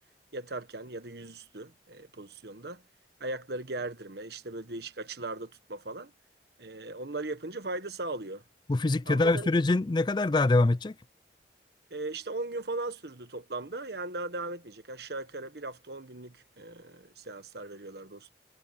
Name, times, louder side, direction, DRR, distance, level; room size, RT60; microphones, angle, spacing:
voice 1, 0.3-2.8 3.2-6.1 6.6-8.4 9.1-9.5 11.9-18.3, right 2 dB, 60° right, 1.4 m, -38 dB
voice 2, 8.7-10.9, left 2 dB, 25° left, 0.4 m, -24 dB
head